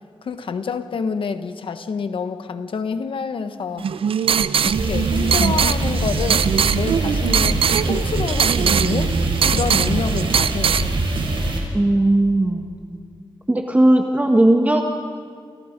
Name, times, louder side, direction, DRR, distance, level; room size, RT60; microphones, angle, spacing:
voice 1, 0.2-3.9 4.6-6.5 6.7-7.6 7.9-9.2 9.5-11.1, left 5 dB, 75° left, 10 dB, 1.3 m, -27 dB
sound 1, 3.8-10.9, right 7 dB, 85° right, 0.7 m, -21 dB
sound 2, 4.7-11.6, right 2 dB, 65° right, 4.9 m, -23 dB
voice 2, 11.7-12.7 13.5-14.8, right 1 dB, 15° right, 3 dB, 1.5 m, -17 dB
29.0 x 29.0 x 5.3 m, 2.1 s
wide cardioid pair, 150°, 9 cm